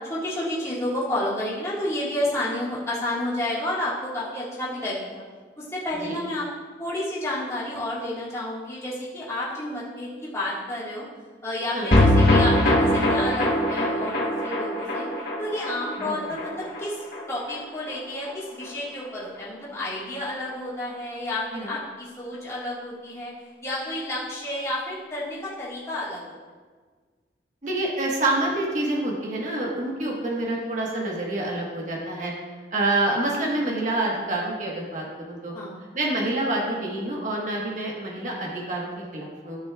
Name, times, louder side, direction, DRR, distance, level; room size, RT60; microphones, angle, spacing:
voice 1, 0.0-5.2 5.6-6.5 6.8-11.1 11.4-15.1 15.4-17.0 17.3-23.3 23.6-26.2 30.1-30.4 35.5-35.9, left 1 dB, 15° left, -9 dB, 1.8 m, -30 dB
sound 1, 11.9-18.3 18.6-18.7 19.0-19.1, left 1 dB, 55° left, 1.6 m, -22 dB
voice 2, 27.6-32.3 32.7-35.5 35.9-39.6, right 2 dB, 45° right, -3 dB, 1.4 m, -27 dB
12.5 x 6.1 x 2.4 m, 1.5 s
head